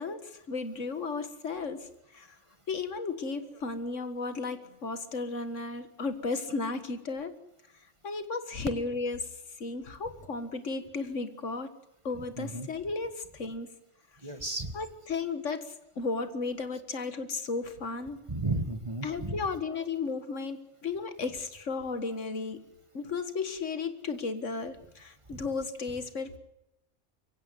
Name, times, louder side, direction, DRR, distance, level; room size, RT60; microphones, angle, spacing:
voice 1, 0.0-2.4 2.7-7.3 8.0-9.3 9.6-11.7 12.0-13.7 14.7-18.2 19.0-22.7 22.9-26.4, left 4 dB, 90° left, 11 dB, 2.1 m, -34 dB
voice 2, 12.4-12.7 14.2-14.7 18.3-19.4 25.3-25.4, right 2 dB, 25° right, 10 dB, 1.6 m, -33 dB
23.5 x 16.0 x 9.6 m, 0.89 s
omnidirectional pair, 1.2 m